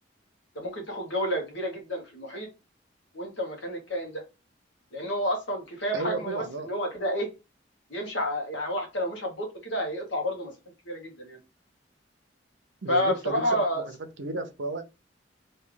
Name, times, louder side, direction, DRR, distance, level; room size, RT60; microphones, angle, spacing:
voice 1, 0.5-2.5 3.1-4.2 4.9-7.3 7.9-10.5 10.9-11.4 12.9-13.9, equal, 75° left, 1.2 m, -30 dB
voice 2, 5.9-6.7 12.8-13.8 14.2-14.8, right 3 dB, 75° right, 0.7 m, -33 dB
3.2 x 2.7 x 3.7 m
head